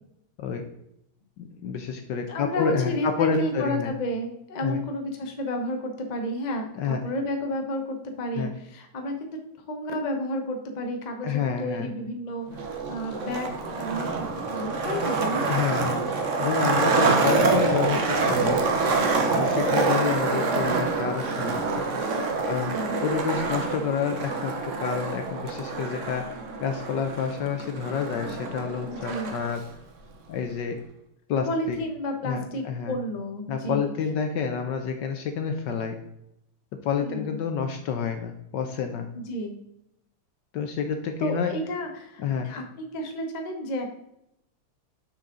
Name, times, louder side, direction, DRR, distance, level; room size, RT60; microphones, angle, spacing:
voice 1, 1.4-3.9 4.6-4.8 6.8-7.0 8.3-8.5 11.2-11.9 15.5-16.0 16.4-18.6 19.3-22.0 22.5-22.7 23.0-26.3 26.6-29.6 30.3-30.8 31.3-31.8 32.2-32.9 33.5-36.0 36.8-39.1 40.5-41.5 42.2-42.5, left 6 dB, 70° left, 6 dB, 1.2 m, -29 dB
voice 2, 2.3-9.4 9.7-15.5 22.4-23.0 28.8-29.3 31.5-33.9 37.0-37.4 39.1-39.6 41.2-43.9, equal, 35° left, 3 dB, 0.6 m, -32 dB
Skateboard, 12.5-29.5, right 3 dB, 55° right, 0.9 m, -26 dB
6.6 x 6.3 x 3.8 m, 0.80 s
omnidirectional pair, 2.4 m